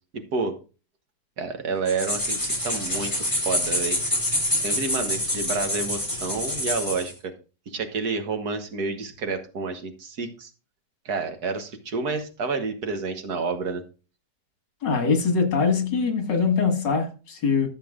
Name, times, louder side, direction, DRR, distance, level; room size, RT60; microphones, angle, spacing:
voice 1, 0.1-0.6 1.4-4.0 4.5-7.3 7.7-10.5 11.1-13.8, right 4 dB, 65° right, 1.7 m, -29 dB
sound 1, 1.9-7.1, left 1 dB, 10° left, 3.9 m, -26 dB
voice 2, 14.8-17.7, left 5 dB, 85° left, 2.4 m, -23 dB
14.0 x 7.1 x 2.4 m
omnidirectional pair, 1.9 m